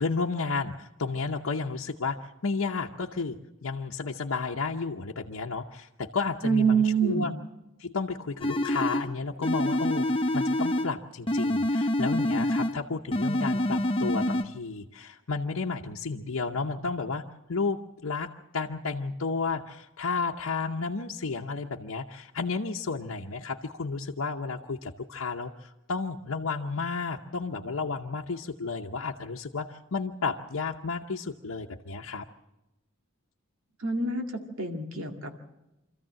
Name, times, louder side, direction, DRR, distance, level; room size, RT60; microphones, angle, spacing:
voice 1, 0.0-7.3 7.8-10.1 10.3-17.2 17.5-32.3, left 4 dB, 90° left, -1 dB, 0.9 m, -32 dB
voice 2, 6.4-7.3 33.8-35.4, right 5 dB, 85° right, 4 dB, 2.1 m, -26 dB
sound 1, 8.4-9.1 9.4-10.9 11.3-12.8 13.1-14.4, left 1 dB, 25° left, 0.8 m, -26 dB
25.5 x 14.0 x 7.6 m, 0.96 s
head